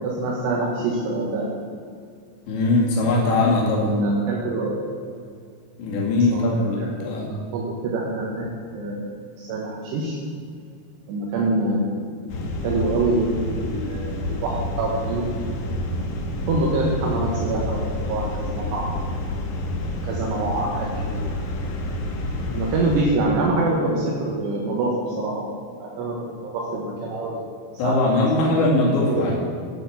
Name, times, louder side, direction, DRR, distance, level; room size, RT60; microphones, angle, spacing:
voice 1, 0.0-1.5 3.8-4.8 6.3-6.9 7.5-8.5 8.7-9.0 9.4-10.2 11.1-12.1 12.6-13.3 13.6-15.3 16.5-18.9 20.0-21.3 22.5-25.4 25.8-27.4 27.8-27.9 29.1-29.2, right 2 dB, 75° right, -4 dB, 3.4 m, -25 dB
voice 2, 2.5-3.9 5.8-7.5 27.8-29.4, left 2 dB, 85° left, -2 dB, 4.3 m, -21 dB
sound 1, 12.3-23.0, left 1 dB, 65° left, 1.8 m, -28 dB
10.0 x 7.5 x 7.1 m, 2.3 s
omnidirectional pair, 5.0 m